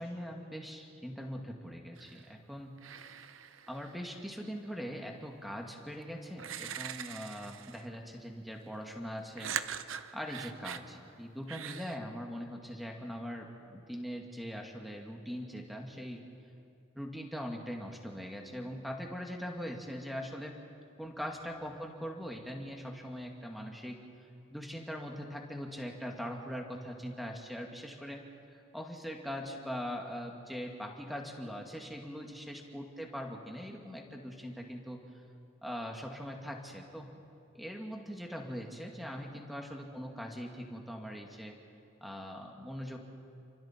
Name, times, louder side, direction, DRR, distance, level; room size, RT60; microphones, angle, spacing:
voice 1, 0.0-2.8 3.7-9.6 10.1-16.2 17.0-20.6 21.0-24.0 24.5-28.2 28.7-35.0 35.6-37.1 37.5-41.6 42.0-43.0, equal, ahead, 1 dB, 2.1 m, -41 dB
sound 1, 2.0-2.4 2.8-4.2 5.7-5.8 6.4-8.0 9.4-10.9 11.5-12.0, right 8 dB, 90° right, 0.8 m, -42 dB
29.5 x 24.5 x 4.5 m, 2.7 s
head